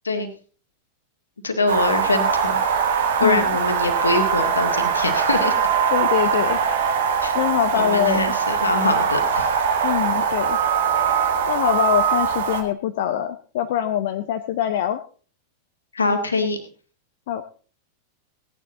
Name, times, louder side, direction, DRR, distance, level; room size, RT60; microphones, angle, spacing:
voice 1, 1.4-2.6 3.2-5.5 7.2-7.3 7.7-9.5 15.9-16.6, left 3 dB, 75° left, 6 dB, 2.0 m, -23 dB
sound 1, 1.7-12.6, right 6 dB, 60° right, 1.7 m, -21 dB
voice 2, 5.9-6.6 7.3-8.3 9.8-10.6 11.5-15.0 17.3-17.4, left 11 dB, 55° left, 8 dB, 0.8 m, -23 dB
17.0 x 10.0 x 3.9 m, 0.40 s
figure-of-eight pair, 90°, 0 cm